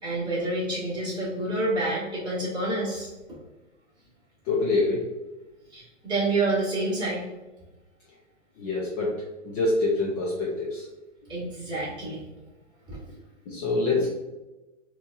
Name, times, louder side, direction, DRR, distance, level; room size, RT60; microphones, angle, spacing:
voice 1, 0.0-3.1 5.7-7.2 11.3-12.2 12.9-13.0, right 2 dB, 10° right, -8 dB, 1.4 m, -28 dB
voice 2, 4.4-5.1 8.6-10.9 13.5-14.1, left 3 dB, 30° left, -4 dB, 0.7 m, -26 dB
4.3 x 2.9 x 2.4 m, 1.1 s
hypercardioid pair, 140°, 37 cm